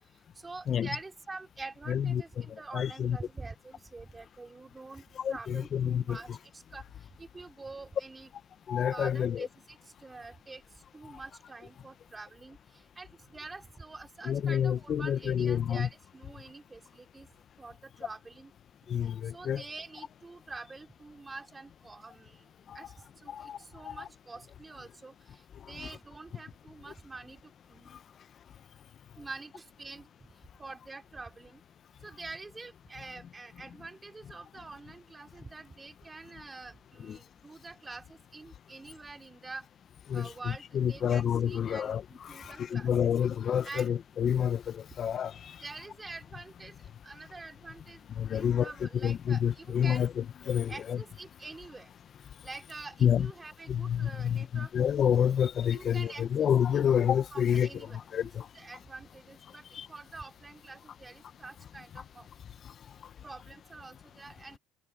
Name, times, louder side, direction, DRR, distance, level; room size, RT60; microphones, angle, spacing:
voice 1, 0.3-6.8 7.2-8.3 8.9-10.6 10.9-17.3 17.6-18.5 19.3-22.5 22.7-28.0 29.2-30.1 30.6-31.6 32.0-39.6 40.1-43.1 43.6-43.9 45.6-46.7 47.0-50.1 50.7-51.9 52.4-54.7 55.7-56.5 57.3-62.3 63.2-64.6, right 3 dB, 15° right, 4.8 m, -46 dB
voice 2, 1.9-2.5 2.7-3.2 5.2-6.2 8.7-9.5 14.3-15.9 18.9-19.6 22.7-22.8 23.3-23.6 23.8-23.9 37.1-37.2 40.1-40.3 40.7-45.5 48.2-51.0 53.0-53.3 53.7-57.7 58.1-58.5 59.7-59.9, left 8 dB, 35° left, 0.9 m, -28 dB
cardioid pair, 130°, 0 cm